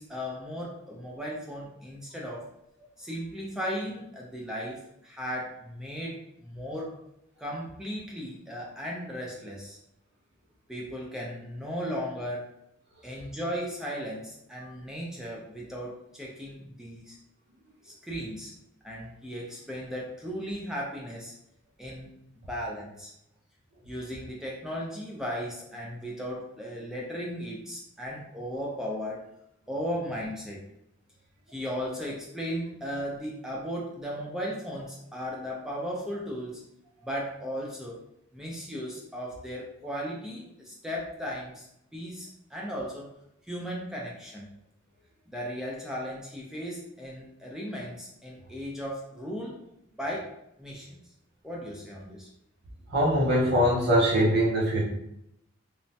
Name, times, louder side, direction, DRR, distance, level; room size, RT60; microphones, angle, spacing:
voice 1, 0.0-2.4 3.0-7.0 7.4-9.8 10.7-12.5 13.0-17.2 17.8-18.5 18.8-21.3 21.8-22.1 22.5-23.1 23.9-29.3 29.7-30.6 31.5-36.6 37.0-38.0 38.3-41.7 41.9-43.1 43.4-44.5 45.3-49.6 50.0-51.0 51.4-52.3, equal, 5° right, -3 dB, 0.4 m, -36 dB
voice 2, 52.9-54.8, equal, 55° right, -6 dB, 0.6 m, -22 dB
3.1 x 2.1 x 2.7 m, 0.79 s
head